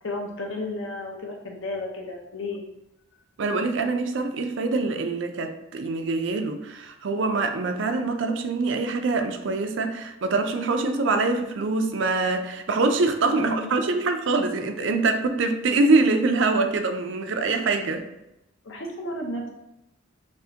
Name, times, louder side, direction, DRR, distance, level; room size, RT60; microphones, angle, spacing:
voice 1, 0.0-2.6 13.3-14.0 18.6-19.5, left 2 dB, 70° left, 1 dB, 0.8 m, -33 dB
voice 2, 3.4-18.0, right 3 dB, 65° right, 6 dB, 0.4 m, -24 dB
5.9 x 2.1 x 2.8 m, 0.90 s
head